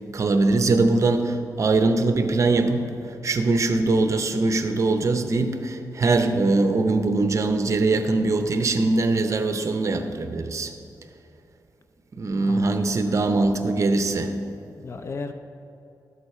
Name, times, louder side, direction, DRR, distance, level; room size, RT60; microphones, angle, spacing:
voice 1, 0.1-10.7 12.2-14.4, right 3 dB, 50° right, 7 dB, 0.8 m, -22 dB
voice 2, 12.3-12.9 14.8-15.3, left 4 dB, 40° left, 7 dB, 0.5 m, -35 dB
12.5 x 8.2 x 4.3 m, 2.6 s
wide cardioid pair, 120°, 7 cm